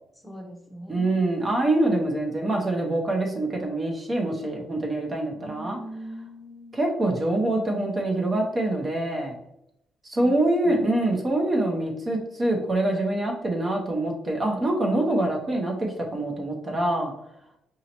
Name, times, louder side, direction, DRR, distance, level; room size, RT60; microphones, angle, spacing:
voice 1, 0.2-1.2 5.3-6.8 10.2-10.3 10.6-11.1, equal, 10° left, 1 dB, 0.8 m, -41 dB
voice 2, 0.9-5.8 6.7-9.3 10.0-17.1, right 1 dB, 30° right, 1 dB, 0.8 m, -25 dB
5.0 x 2.8 x 2.9 m, 0.79 s
cardioid pair, 90°, 0 cm